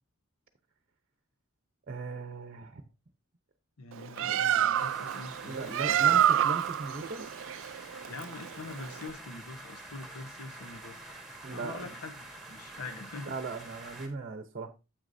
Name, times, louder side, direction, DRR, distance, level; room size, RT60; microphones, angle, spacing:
voice 1, 1.9-2.8 4.2-4.4 5.4-7.2 11.4-11.9 13.2-14.7, right 3 dB, 40° right, 0.8 m, -38 dB
voice 2, 3.8-6.3 8.1-11.0 11.5-13.3, left 3 dB, 85° left, 0.9 m, -44 dB
Bird, 3.9-9.1, right 10 dB, 60° right, 0.3 m, -28 dB
sound 1, 4.7-14.1, right 2 dB, ahead, 1.7 m, -47 dB
9.5 x 8.2 x 2.6 m
head